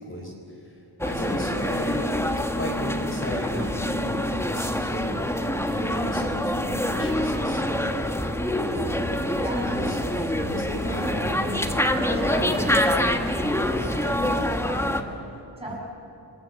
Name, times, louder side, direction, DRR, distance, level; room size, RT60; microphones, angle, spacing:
voice 1, 0.0-2.1 2.6-5.3 5.6-8.3 8.8-12.7 13.7-14.6 15.6-15.7, equal, 30° left, -1 dB, 4.1 m, -35 dB
sound 1, 1.0-15.0, left 1 dB, 5° left, 1.4 m, -26 dB
voice 2, 9.3-9.7 10.0-10.1 11.0-12.7 13.6-15.8, right 1 dB, 15° right, -3 dB, 7.0 m, -37 dB
28.0 x 21.0 x 8.3 m, 2.9 s
wide cardioid pair, 115°, 43 cm